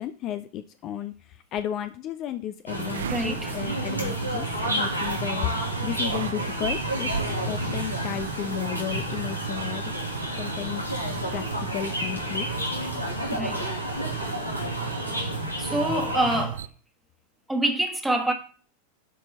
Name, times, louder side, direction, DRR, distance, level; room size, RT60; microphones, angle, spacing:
voice 1, 0.0-5.5 5.8-7.1 7.4-9.9 10.4-10.8 11.3-11.4 11.7-12.5, left 10 dB, 35° left, 0.5 m, -33 dB
sound 1, 2.7-16.4, equal, 85° left, 2.3 m, -30 dB
sound 2, 2.8-16.7, right 10 dB, 60° right, 0.5 m, -36 dB
voice 2, 3.1-3.5 13.3-13.7 15.6-16.6 17.5-18.3, right 1 dB, 5° right, 1.5 m, -26 dB
11.5 x 4.5 x 4.2 m
figure-of-eight pair, 90°, 0 cm